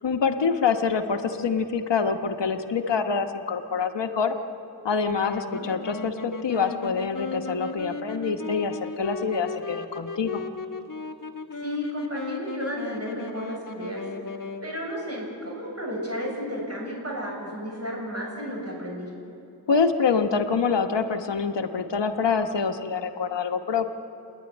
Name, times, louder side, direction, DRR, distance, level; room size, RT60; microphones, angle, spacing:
voice 1, 0.0-4.4 4.8-10.4 19.7-23.9, left 5 dB, 80° left, 5 dB, 1.2 m, -26 dB
Wind instrument woodwind instrument, 5.2-14.7, left 4 dB, 50° left, 1.2 m, -36 dB
voice 2, 5.3-5.7 11.6-14.0 14.6-19.1, equal, 35° right, -3 dB, 7.2 m, -33 dB
29.5 x 10.5 x 9.9 m, 2.6 s
wide cardioid pair, 95°, 42 cm